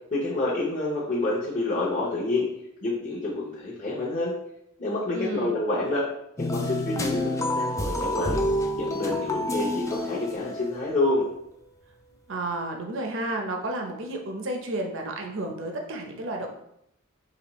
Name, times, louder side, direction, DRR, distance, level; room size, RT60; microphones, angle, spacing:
voice 1, 0.1-2.5 2.8-4.3 4.8-6.0 6.4-8.4 8.7-11.3, left 2 dB, 35° left, -7 dB, 0.8 m, -28 dB
voice 2, 5.1-5.6 12.3-16.5, right 2 dB, 65° right, 2 dB, 0.7 m, -31 dB
sound 1, 6.4-11.0, left 1 dB, 15° left, 0.4 m, -28 dB
5.0 x 3.1 x 3.0 m, 0.76 s
head